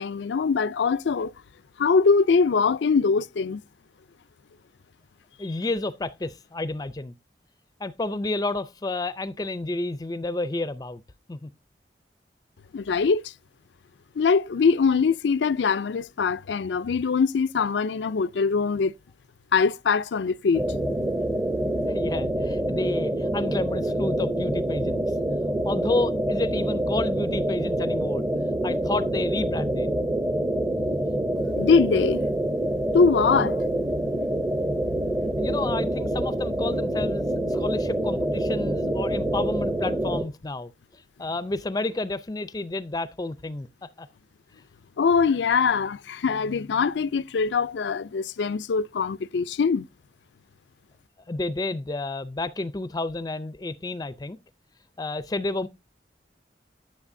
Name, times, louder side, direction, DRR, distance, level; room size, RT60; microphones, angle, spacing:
voice 1, 0.0-1.3 1.8-3.6 12.7-13.3 14.2-18.9 19.5-20.6 31.6-32.2 32.9-33.6 45.0-49.9, left 5 dB, 90° left, 0.5 m, -22 dB
voice 2, 5.4-7.2 7.8-11.0 11.3-11.5 21.8-25.0 25.6-28.2 28.6-30.0 35.4-40.7 41.2-44.1 51.3-54.4 55.0-55.7, left 2 dB, 20° left, 0.4 m, -30 dB
sound 1, 20.5-40.3, right 1 dB, 15° right, 0.7 m, -26 dB
10.5 x 9.6 x 2.6 m
head